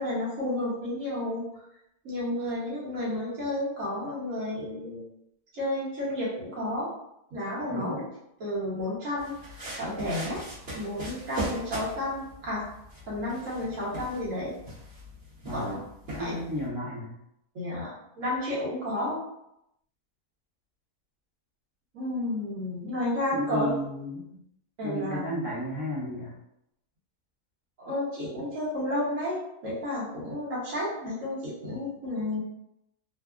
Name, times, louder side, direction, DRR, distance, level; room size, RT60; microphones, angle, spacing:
voice 1, 0.0-1.4 2.0-5.0 5.5-6.9 7.3-8.0 8.4-9.3 9.8-10.4 10.7-12.6 13.1-14.5 15.5-15.8 16.2-16.4 17.5-19.2 21.9-23.7 24.8-25.2 27.8-32.4, left 1 dB, 60° right, -7 dB, 1.4 m, -31 dB
voice 2, 7.7-8.0 15.4-15.7 16.1-17.2 23.3-24.3 24.8-26.4, equal, 25° right, -9 dB, 0.4 m, -33 dB
sound 1, 9.2-16.7, right 1 dB, 45° right, 1.2 m, -39 dB
3.3 x 2.0 x 2.4 m, 0.80 s
omnidirectional pair, 1.6 m